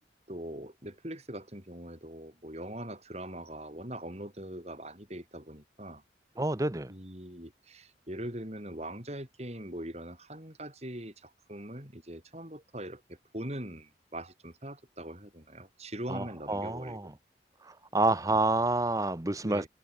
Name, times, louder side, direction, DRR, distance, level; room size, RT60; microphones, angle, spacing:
voice 1, 0.3-6.0 6.9-17.1 18.3-18.4 19.4-19.7, right 1 dB, 35° right, 6.7 m, -42 dB
voice 2, 6.4-6.9 16.1-17.1 17.6-19.7, right 2 dB, 20° right, 0.8 m, -28 dB
head